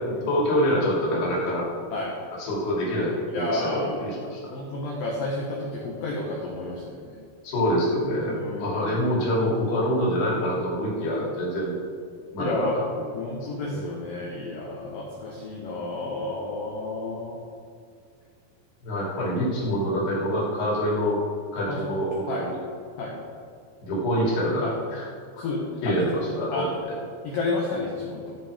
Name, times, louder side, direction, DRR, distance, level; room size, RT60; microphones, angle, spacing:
voice 1, 0.3-1.7 2.4-4.5 7.4-11.8 12.3-13.1 13.6-13.8 18.8-21.2 21.5-22.6 23.8-25.1 25.8-27.0, equal, 55° left, -5 dB, 4.7 m, -26 dB
voice 2, 3.3-4.0 4.5-7.2 8.3-9.1 12.4-12.8 13.1-17.4 21.7-21.9 22.3-22.4 23.0-23.1 24.6-24.7 25.4-26.1 26.5-26.7 27.2-28.4, left 2 dB, 75° left, -2 dB, 2.1 m, -31 dB
15.5 x 6.6 x 5.0 m, 2.2 s
omnidirectional pair, 5.9 m